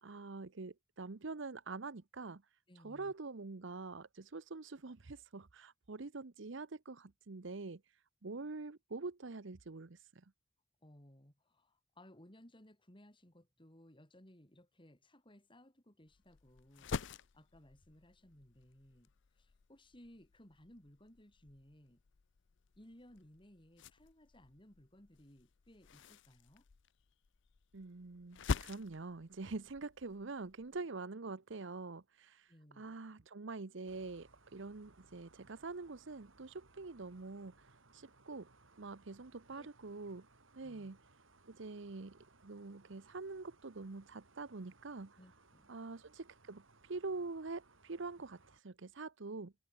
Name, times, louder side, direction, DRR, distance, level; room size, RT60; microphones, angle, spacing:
voice 1, 0.0-10.3 27.7-38.5 38.8-40.3 40.5-41.0 41.5-45.2 45.7-49.5, right 3 dB, 65° right, 0.9 m, -45 dB
voice 2, 2.7-3.1 10.8-17.0 17.3-22.0 22.8-26.6 32.5-33.0 39.5-39.7 40.6-40.9 45.2-45.7, left 1 dB, 25° left, 4.7 m, -61 dB
sound 1, 16.1-30.8, left 4 dB, 65° left, 0.6 m, -47 dB
sound 2, 33.8-48.6, right 3 dB, 85° right, 3.7 m, -66 dB
head